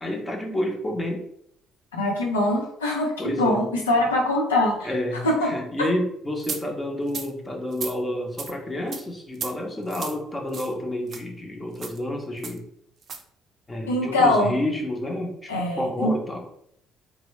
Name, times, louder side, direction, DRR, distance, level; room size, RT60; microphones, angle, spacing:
voice 1, 0.0-1.2 3.2-3.7 4.8-12.6 13.7-16.4, left 1 dB, 25° left, 2 dB, 0.8 m, -29 dB
voice 2, 2.0-4.9 5.2-5.5 13.9-14.6 15.5-16.1, left 1 dB, 85° left, -2 dB, 0.7 m, -23 dB
sound 1, 6.4-6.6 7.1-7.3 7.7-7.9 8.4-8.5 8.9-9.0 9.3-9.5 9.9-10.2 10.5-10.7 11.1-11.2 11.8-12.0 12.4-12.6 13.0-13.2, right 5 dB, 50° right, 0.4 m, -34 dB
3.1 x 2.1 x 3.1 m, 0.72 s
hypercardioid pair, 50°, 0 cm